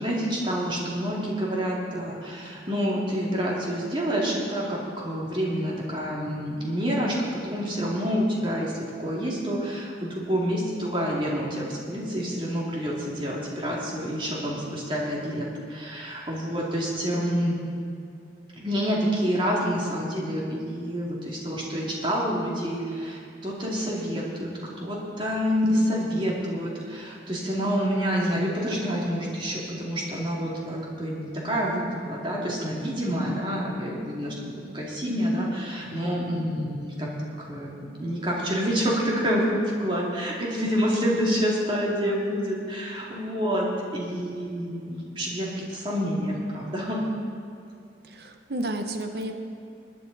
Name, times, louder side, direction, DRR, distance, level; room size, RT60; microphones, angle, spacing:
voice 1, 0.0-17.6 18.5-24.5 24.8-37.1 37.4-47.0, equal, 25° right, -4 dB, 2.4 m, -28 dB
voice 2, 48.1-49.3, right 1 dB, 60° right, 6 dB, 0.9 m, -31 dB
19.5 x 9.7 x 4.1 m, 2.4 s
head